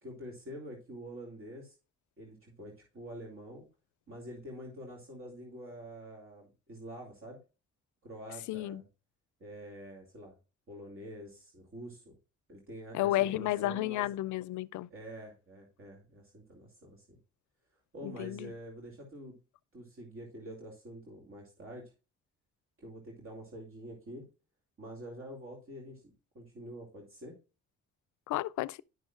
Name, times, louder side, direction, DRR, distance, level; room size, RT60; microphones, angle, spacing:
voice 1, 0.0-1.7 2.2-3.7 4.1-7.4 8.0-8.9 9.4-10.3 10.7-12.2 12.5-14.1 14.9-17.2 17.9-19.4 19.7-21.9 22.8-24.2 24.8-27.4, right 1 dB, 45° right, 2.6 m, -47 dB
voice 2, 8.5-8.8 12.9-14.9 18.0-18.5 28.3-28.8, left 15 dB, 75° left, 0.5 m, -32 dB
11.0 x 6.3 x 2.4 m
cardioid pair, 90°, 30 cm